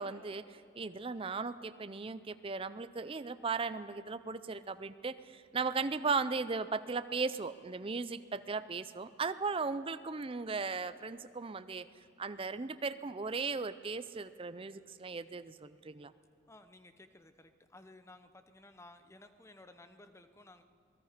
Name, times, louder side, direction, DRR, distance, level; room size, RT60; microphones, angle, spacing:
voice 1, 0.0-11.9 12.2-16.1, right 4 dB, 25° right, 13 dB, 0.5 m, -37 dB
voice 2, 16.5-20.6, left 2 dB, 15° left, 9 dB, 0.7 m, -56 dB
27.5 x 18.5 x 5.1 m, 2.5 s
head